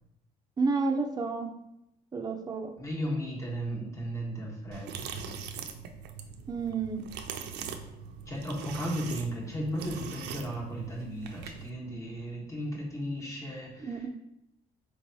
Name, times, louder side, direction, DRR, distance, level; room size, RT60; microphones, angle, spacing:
voice 1, 0.6-1.5 2.1-2.7 6.5-7.0 13.9-14.1, right 4 dB, 25° right, 4 dB, 0.5 m, -30 dB
voice 2, 2.8-5.7 8.3-14.1, equal, 20° left, -2 dB, 1.2 m, -35 dB
sound 1, 4.7-11.7, right 6 dB, 85° right, 0.5 m, -41 dB
4.5 x 3.1 x 2.7 m, 0.83 s
cardioid pair, 110°, 17 cm